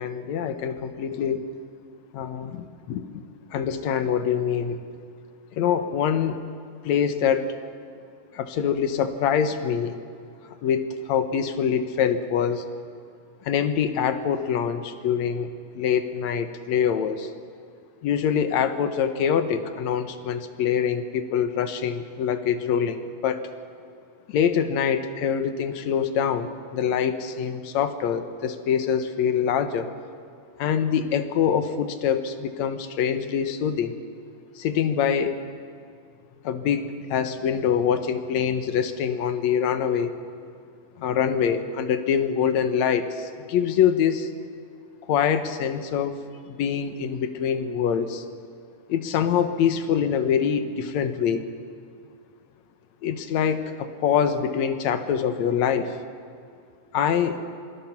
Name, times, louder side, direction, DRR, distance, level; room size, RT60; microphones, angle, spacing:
voice 1, 0.0-1.4 2.1-3.2 3.5-4.8 5.5-6.4 6.8-7.5 8.3-10.0 10.4-12.7 13.4-15.5 15.8-17.3 18.0-23.4 24.3-29.9 30.6-34.0 34.6-35.4 36.4-40.2 41.0-44.3 45.1-46.2 46.4-48.3 48.9-51.5 53.0-56.0 56.9-57.4, left 8 dB, 70° left, 9 dB, 2.3 m, -24 dB
25.0 x 20.5 x 5.9 m, 2.2 s
omnidirectional pair, 3.4 m